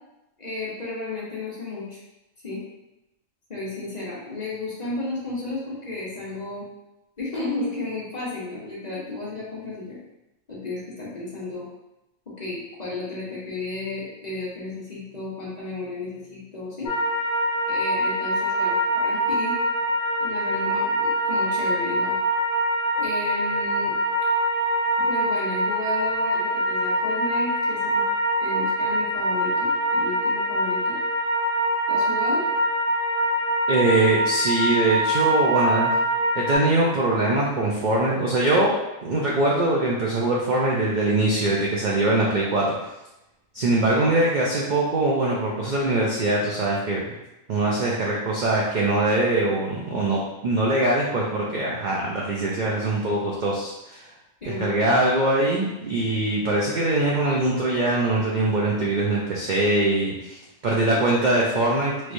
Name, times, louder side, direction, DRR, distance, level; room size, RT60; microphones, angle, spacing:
voice 1, 0.4-2.0 2.4-2.6 3.5-6.6 7.2-10.0 10.5-11.7 12.3-16.9 17.7-19.6 20.2-22.2 22.9-23.9 25.0-28.0 28.4-31.0 31.9-32.4 54.4-54.7, left 2 dB, 35° left, -7 dB, 0.8 m, -33 dB
sound 1, 16.9-36.6, equal, 65° left, 1.1 m, -24 dB
voice 2, 33.7-35.9 36.3-38.7 39.0-42.8 43.5-47.0 47.5-54.0 54.6-62.1, right 2 dB, 65° right, -4 dB, 0.4 m, -22 dB
3.2 x 3.1 x 2.5 m, 0.94 s
omnidirectional pair, 1.4 m